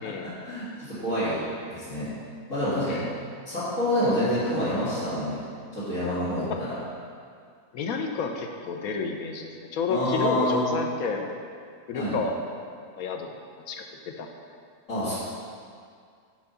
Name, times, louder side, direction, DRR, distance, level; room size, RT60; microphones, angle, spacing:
voice 1, 0.2-1.4 1.7-2.1 2.5-3.0 3.5-5.4 5.7-6.8 9.9-10.6 11.9-12.2 14.9-15.2, equal, 55° left, -16 dB, 2.5 m, -27 dB
voice 2, 7.7-11.4 11.9-12.4 12.9-13.3 13.7-14.3, left 5 dB, 75° left, 3 dB, 1.1 m, -30 dB
6.2 x 5.0 x 5.6 m, 2.2 s
omnidirectional pair, 1.6 m